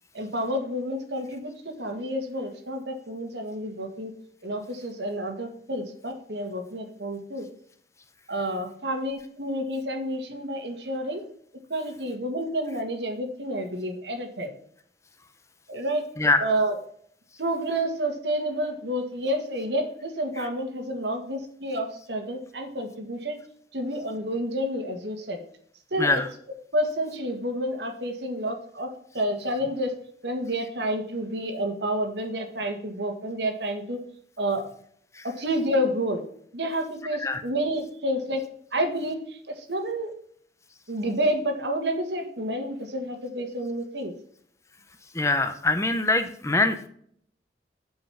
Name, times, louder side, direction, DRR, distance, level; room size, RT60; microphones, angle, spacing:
voice 1, 0.1-4.1 4.4-7.5 8.3-11.2 11.7-14.5 15.7-16.0 16.4-16.8 17.4-23.4 23.7-25.4 25.9-26.2 26.7-30.0 30.2-34.0 34.4-34.7 35.2-36.2 36.5-38.4 38.7-40.1 40.9-44.1, equal, 80° right, 4 dB, 1.8 m, -29 dB
voice 2, 16.2-16.5 26.0-26.3 35.2-35.3 37.2-37.4 45.1-46.9, left 2 dB, 15° left, 9 dB, 0.7 m, -23 dB
8.0 x 5.4 x 5.6 m, 0.63 s
head